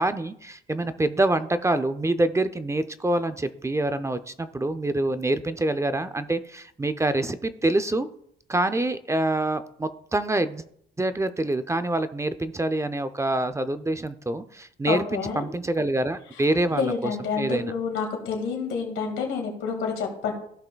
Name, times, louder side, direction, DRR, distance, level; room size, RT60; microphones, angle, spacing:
voice 1, 0.0-8.1 8.5-10.6 11.0-17.1 17.4-17.7, right 2 dB, 15° right, 11 dB, 0.5 m, -26 dB
voice 2, 14.9-15.4 16.7-20.3, left 6 dB, 90° left, 2 dB, 2.0 m, -28 dB
15.0 x 5.6 x 2.3 m, 0.69 s
cardioid pair, 90°, 20 cm